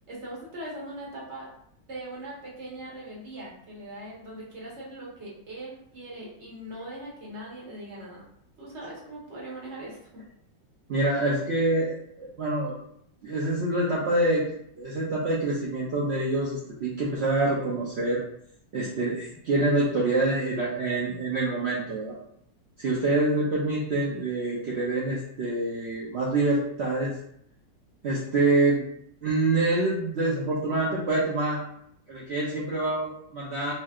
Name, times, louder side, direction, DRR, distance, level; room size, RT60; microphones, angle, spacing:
voice 1, 0.1-1.5 1.9-8.2 8.6-10.2, right 1 dB, 45° right, -5 dB, 1.2 m, -40 dB
voice 2, 10.9-12.7 13.2-14.4 14.8-18.2 18.7-22.2 22.8-27.2 28.0-28.8 29.2-31.6 32.1-33.7, right 2 dB, 75° right, -5 dB, 0.6 m, -26 dB
3.2 x 3.1 x 2.4 m, 0.70 s
omnidirectional pair, 1.8 m